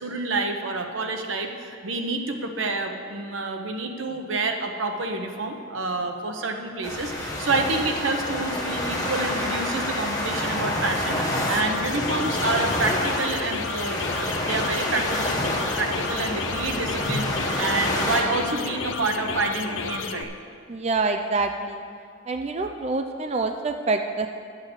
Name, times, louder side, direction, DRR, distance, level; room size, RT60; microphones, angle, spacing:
voice 1, 0.0-20.3, right 3 dB, 80° right, 4 dB, 1.0 m, -28 dB
sound 1, 6.8-18.2, left 1 dB, 20° left, 1.5 m, -28 dB
sound 2, 11.4-20.2, left 5 dB, 85° left, 0.6 m, -32 dB
voice 2, 20.7-21.8 22.3-24.3, right 3 dB, 35° right, 5 dB, 0.4 m, -26 dB
10.5 x 7.5 x 6.3 m, 2.2 s
head